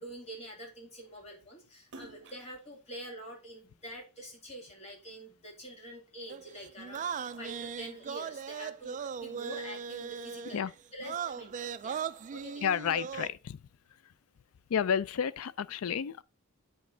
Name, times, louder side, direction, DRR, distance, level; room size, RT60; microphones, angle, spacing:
voice 1, 0.0-10.6 10.9-12.0 12.3-12.7, equal, 30° left, 2.5 m, -46 dB
Splash splatter, 1.8-4.4 4.9-6.3 6.6-8.4, right 3 dB, 55° right, 0.8 m, -55 dB
sound 1, 6.3-10.6 11.0-13.3, right 7 dB, 35° right, 0.3 m, -38 dB
voice 2, 12.6-13.6 14.0-14.1 14.7-16.2, left 8 dB, 80° left, 0.4 m, -31 dB
8.3 x 5.3 x 3.8 m
head